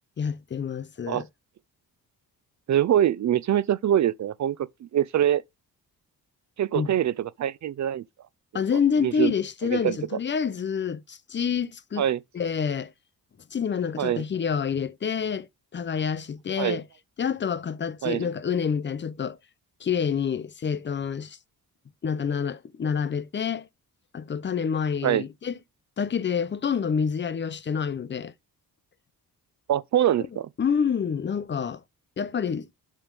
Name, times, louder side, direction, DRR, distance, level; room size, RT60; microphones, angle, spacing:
voice 1, 0.2-1.3 6.7-6.9 8.5-12.0 12.3-12.9 13.5-15.5 15.7-16.8 17.2-19.4 19.8-21.4 22.0-23.7 24.1-25.5 26.0-28.3 30.6-31.8 32.2-32.7, left 7 dB, 30° left, 0.6 m, -27 dB
voice 2, 2.7-4.6 4.8-5.4 6.6-8.0 9.0-9.3 9.6-10.0 12.0-12.2 14.0-14.2 16.6-16.8 18.0-18.3 25.0-25.2 29.7-30.5, right 11 dB, 50° right, 0.4 m, -24 dB
7.3 x 3.4 x 5.2 m
cardioid pair, 110°, 37 cm